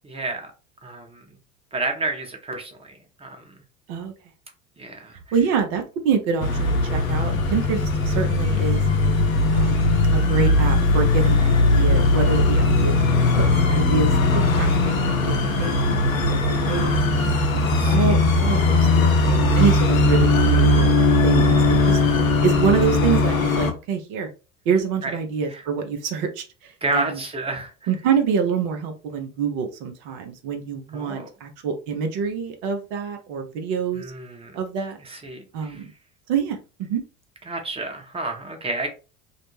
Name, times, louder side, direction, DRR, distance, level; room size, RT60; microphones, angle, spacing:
voice 1, 0.0-0.5 0.8-1.2 1.7-3.6 4.8-5.2 16.3-16.8 17.7-18.2 25.0-25.2 25.5-25.6 26.8-27.9 30.9-31.3 34.0-34.6 35.0-35.8 37.5-38.9, right 2 dB, 15° right, 4 dB, 0.8 m, -31 dB
voice 2, 5.3-8.8 9.5-13.0 13.4-14.1 14.6-17.1 17.9-20.9 21.2-22.0 22.4-24.3 24.7-27.2 27.9-34.0 34.5-35.0 35.5-35.9 36.3-37.0, right 6 dB, 55° right, 5 dB, 0.7 m, -26 dB
sound 1, 6.4-23.7, left 2 dB, 85° left, 0.6 m, -19 dB
2.5 x 2.0 x 3.1 m, 0.33 s
hypercardioid pair, 70°, 40 cm